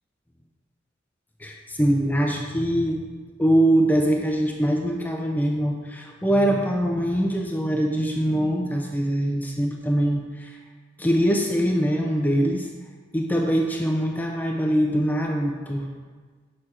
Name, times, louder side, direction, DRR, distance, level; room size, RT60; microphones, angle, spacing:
voice 1, 1.4-3.0 3.4-10.6 11.0-12.7 13.1-15.9, equal, 10° left, 1 dB, 0.6 m, -23 dB
6.8 x 6.3 x 4.3 m, 1.4 s
head